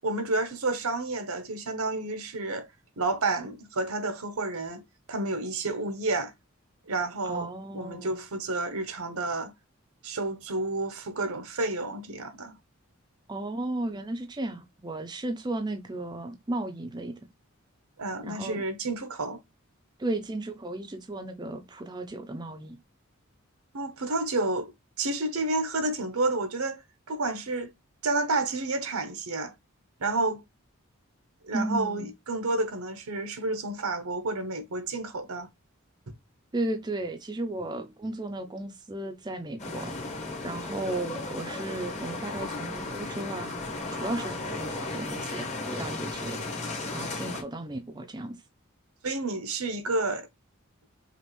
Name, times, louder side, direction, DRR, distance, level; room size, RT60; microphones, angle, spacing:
voice 1, 0.0-2.7 3.0-4.8 5.1-6.3 6.9-7.5 7.7-9.5 10.0-12.6 18.0-19.4 23.7-24.7 25.0-26.8 27.1-27.7 28.0-29.5 30.0-30.4 31.4-35.5 49.0-50.3, right 2 dB, 85° right, 0.9 m, -30 dB
voice 2, 7.2-8.2 13.3-17.1 18.2-18.6 20.0-22.8 31.5-32.1 36.5-39.9 40.4-43.6 43.9-46.5 46.9-48.4, right 2 dB, 20° right, 0.5 m, -34 dB
sound 1, 39.6-47.4, left 2 dB, 30° left, 1.0 m, -35 dB
5.1 x 2.5 x 3.0 m
head